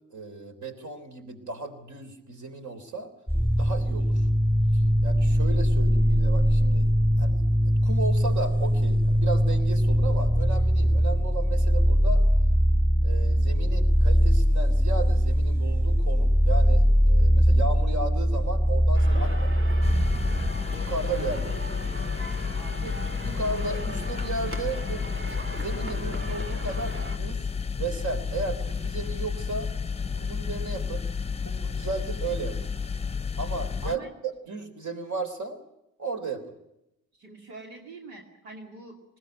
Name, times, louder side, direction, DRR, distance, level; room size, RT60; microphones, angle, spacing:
voice 1, 0.1-3.1 3.5-4.3 4.7-6.9 7.2-12.2 13.0-19.7 20.7-21.9 22.8-22.9 23.2-25.0 25.5-27.5 27.8-29.7 30.1-31.1 31.4-32.7 33.4-35.6 36.0-36.4, right 3 dB, 55° right, 6 dB, 3.7 m, -35 dB
sound 1, 3.3-20.5, equal, 5° right, 2.1 m, -21 dB
sound 2, 18.9-27.2, right 1 dB, 35° right, 2.9 m, -39 dB
sound 3, 19.8-34.0, left 5 dB, 15° left, 0.9 m, -31 dB
voice 2, 22.6-23.0 33.8-34.1 37.2-39.2, right 2 dB, 80° right, 1 dB, 2.7 m, -45 dB
20.0 x 18.5 x 9.2 m, 0.87 s
hypercardioid pair, 50°, 35 cm